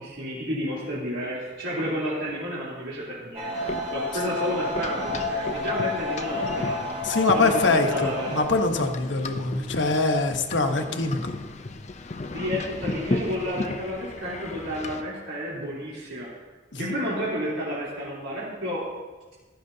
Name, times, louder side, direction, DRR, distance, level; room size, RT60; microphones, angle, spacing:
voice 1, 0.0-6.9 7.3-8.4 12.3-16.3 16.8-18.8, equal, 90° right, -9 dB, 3.4 m, -31 dB
sound 1, 3.3-8.4, left 2 dB, 30° right, 2.3 m, -30 dB
sound 2, 3.5-15.0, left 2 dB, 35° left, 0.5 m, -35 dB
voice 2, 7.0-11.3 16.7-16.9, left 3 dB, 75° left, 5 dB, 1.1 m, -24 dB
15.5 x 12.5 x 2.8 m, 1.3 s
head